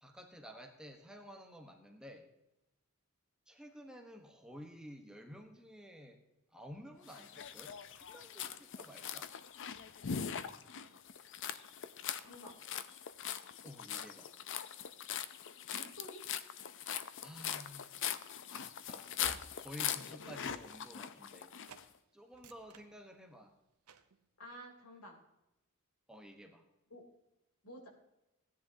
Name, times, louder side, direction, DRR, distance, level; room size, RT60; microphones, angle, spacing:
voice 1, 0.0-2.3 3.5-6.2 6.5-9.3 13.6-14.3 17.2-17.9 18.5-19.1 19.6-21.5 22.1-23.5 26.1-26.7, equal, 5° right, 3 dB, 1.1 m, -52 dB
sound 1, 7.1-21.8, left 9 dB, 55° left, 0.6 m, -42 dB
voice 2, 12.2-12.5 15.7-16.2 24.4-25.2 26.9-27.0 27.6-27.9, equal, 85° left, 0 dB, 3.4 m, -51 dB
Train / Slam, 18.8-21.4 21.7-21.9 22.3-23.5 23.9-24.2, right 4 dB, 75° right, 0.9 m, -57 dB
16.5 x 10.5 x 2.8 m, 0.92 s
head